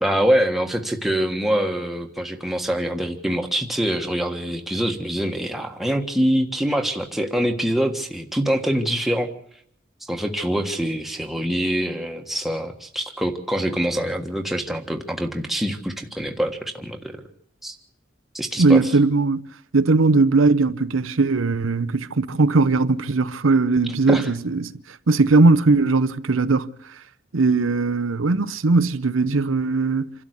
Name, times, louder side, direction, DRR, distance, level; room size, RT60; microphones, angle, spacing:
voice 1, 0.0-9.3 10.1-17.2 17.6-17.8 18.3-18.9 24.1-24.3, equal, ahead, 1.5 m, -24 dB
voice 2, 18.6-19.4 19.7-24.8 25.1-26.7 27.3-30.1, right 3 dB, 90° right, 0.8 m, -19 dB
27.0 x 12.0 x 8.2 m
head